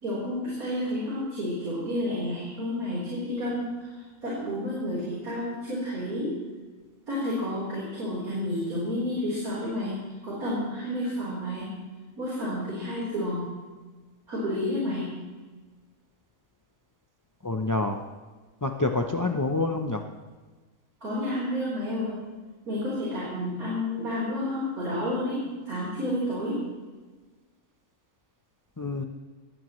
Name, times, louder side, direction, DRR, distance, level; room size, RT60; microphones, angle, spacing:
voice 1, 0.0-3.9 4.2-6.3 7.1-10.0 10.2-11.7 12.2-13.4 14.3-15.1 21.0-22.1 22.7-26.6, left 1 dB, 85° right, -7 dB, 4.7 m, -30 dB
voice 2, 17.4-18.0 18.6-20.0 28.8-29.0, left 2 dB, 30° left, 4 dB, 0.3 m, -27 dB
20.0 x 15.0 x 3.2 m, 1.3 s
omnidirectional pair, 1.5 m